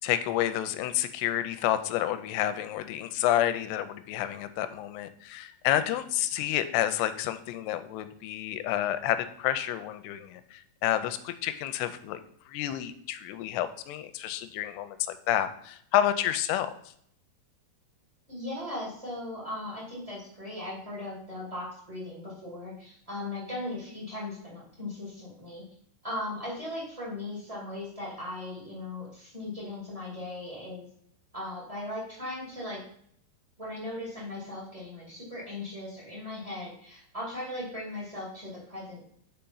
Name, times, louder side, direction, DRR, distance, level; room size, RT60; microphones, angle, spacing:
voice 1, 0.0-12.2 12.5-16.7, left 12 dB, 85° left, 10 dB, 2.5 m, -29 dB
voice 2, 18.3-25.6 26.0-30.9 31.3-32.8 33.6-39.0, left 1 dB, 20° right, -5 dB, 0.9 m, -38 dB
5.7 x 5.1 x 5.4 m, 0.67 s
omnidirectional pair, 5.1 m